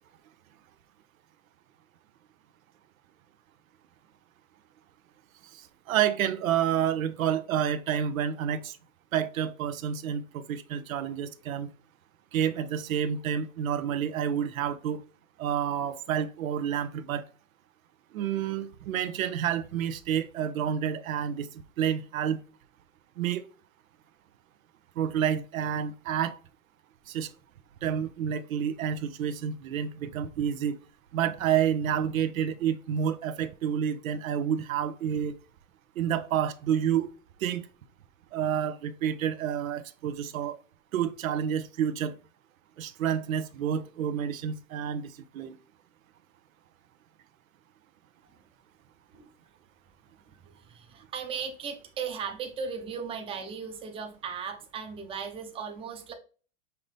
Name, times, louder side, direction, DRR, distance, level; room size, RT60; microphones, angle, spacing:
voice 1, 5.9-8.8 9.1-11.7 12.3-15.0 15.4-17.2 18.1-21.5 21.8-22.4 23.2-23.4 25.0-26.4 27.1-27.3 27.8-30.8 31.1-35.3 36.0-37.1 37.4-37.6 38.3-40.6 40.9-42.1 42.8-45.5, right 9 dB, 90° right, 0.7 m, -29 dB
voice 2, 50.3-56.1, right 6 dB, 15° right, 0.6 m, -37 dB
5.6 x 2.6 x 3.3 m
hypercardioid pair, 135°, 40 cm